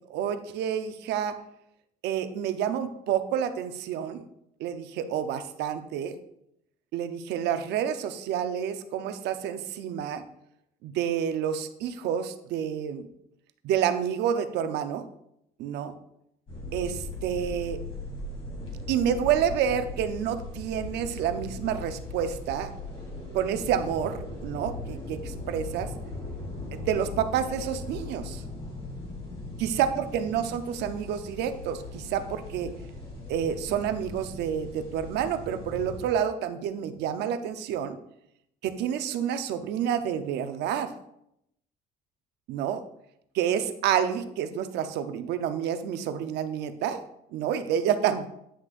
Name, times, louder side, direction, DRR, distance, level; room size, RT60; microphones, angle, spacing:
voice 1, 0.1-1.4 2.0-4.2 4.6-6.1 6.9-10.2 10.8-13.1 13.6-15.0 15.6-15.9 16.7-17.8 18.9-22.7 23.3-25.9 26.7-28.4 29.6-32.7 33.3-38.0 38.6-40.9 42.5-42.8 43.3-47.0 47.3-48.3, right 9 dB, 80° right, 10 dB, 0.7 m, -29 dB
sound 1, 16.5-36.0, left 2 dB, 35° left, 3.1 m, -39 dB
9.6 x 6.1 x 2.5 m, 0.77 s
cardioid pair, 110°, 17 cm